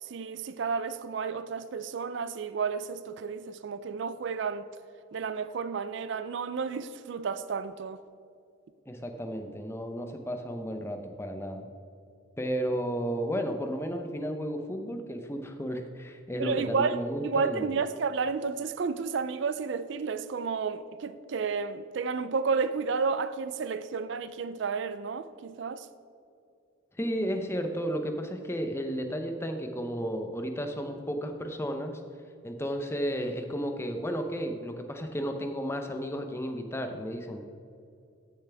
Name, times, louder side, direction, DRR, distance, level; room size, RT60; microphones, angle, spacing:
voice 1, 0.0-4.7 5.1-8.0 16.4-25.9, right 5 dB, 60° right, 0.4 m, -31 dB
voice 2, 8.9-11.7 12.4-17.7 27.0-32.0 32.4-37.4, equal, 10° left, 0.6 m, -33 dB
14.0 x 6.8 x 3.4 m
head